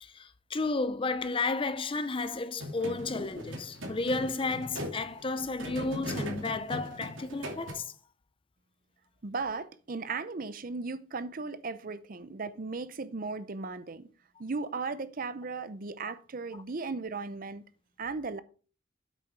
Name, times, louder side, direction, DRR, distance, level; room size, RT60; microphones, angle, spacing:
voice 1, 0.0-7.9, left 3 dB, 25° left, 0.6 m, -32 dB
sound 1, 2.6-7.7, equal, 80° right, 2.8 m, -39 dB
voice 2, 9.2-14.1 14.4-17.6 18.0-18.4, right 4 dB, 45° right, 0.6 m, -36 dB
8.5 x 6.6 x 4.6 m
head